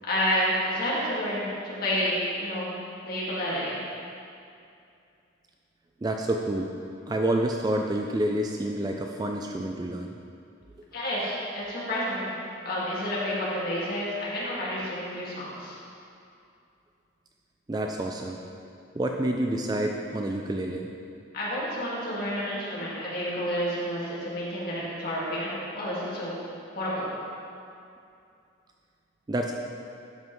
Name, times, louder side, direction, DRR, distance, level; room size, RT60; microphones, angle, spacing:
voice 1, 0.0-2.8 3.0-3.8 10.9-12.3 12.6-15.8 21.3-26.3 26.7-27.1, equal, 50° left, -7 dB, 1.9 m, -30 dB
voice 2, 6.0-6.7 7.1-10.1 17.7-18.4 18.9-20.9 29.3-29.5, right 1 dB, 20° right, 2 dB, 0.3 m, -28 dB
12.0 x 5.6 x 3.1 m, 2.5 s
head